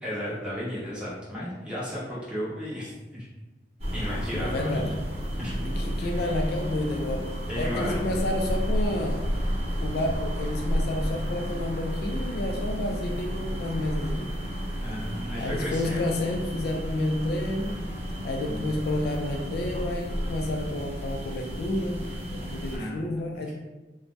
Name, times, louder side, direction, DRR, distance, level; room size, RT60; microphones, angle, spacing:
voice 1, 0.0-3.3 3.9-4.9 5.4-6.1 7.5-8.0 14.8-16.1 18.4-18.7 22.7-23.1, equal, 5° right, -8 dB, 0.8 m, -34 dB
sound 1, 3.8-22.8, equal, 35° right, 0.7 m, -31 dB
voice 2, 4.3-5.0 5.6-9.3 9.8-14.3 15.4-17.9 18.2-23.5, left 1 dB, 60° left, 2 dB, 0.3 m, -30 dB
2.6 x 2.0 x 3.2 m, 1.1 s
head